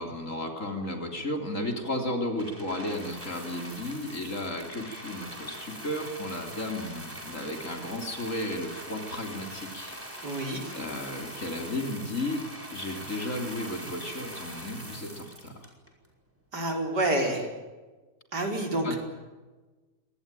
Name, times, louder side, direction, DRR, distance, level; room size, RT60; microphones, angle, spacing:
voice 1, 0.0-10.5 10.7-12.4 12.7-15.5 18.8-19.0, left 1 dB, 50° left, 4 dB, 3.8 m, -34 dB
sound 1, 2.4-16.1 16.8-16.9, equal, 10° right, 5.3 m, -42 dB
voice 2, 10.2-10.7 16.5-17.5 18.3-19.0, right 1 dB, 80° right, 2 dB, 5.4 m, -28 dB
25.0 x 20.0 x 9.1 m, 1.3 s
omnidirectional pair, 1.7 m